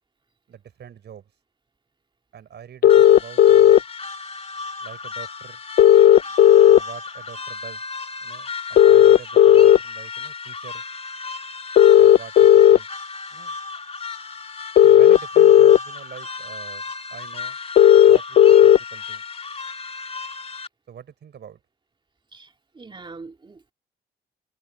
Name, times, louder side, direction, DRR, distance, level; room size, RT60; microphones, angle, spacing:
voice 1, 0.5-1.3 2.3-3.8 4.8-5.6 6.7-7.8 8.2-10.8 12.0-12.9 13.3-13.6 14.8-16.8 17.1-17.6 18.0-19.2 20.9-21.6, right 8 dB, 60° right, 6.0 m, -43 dB
sound 1, 2.8-3.8 5.8-6.8 8.8-9.8 11.8-12.8 14.8-15.8 17.8-18.8, left 10 dB, 50° left, 0.4 m, -11 dB
sound 2, 2.9-20.7, left 4 dB, 30° left, 3.1 m, -35 dB
voice 2, 22.3-23.7, right 3 dB, 25° right, 2.1 m, -43 dB
cardioid pair, 90°, 20 cm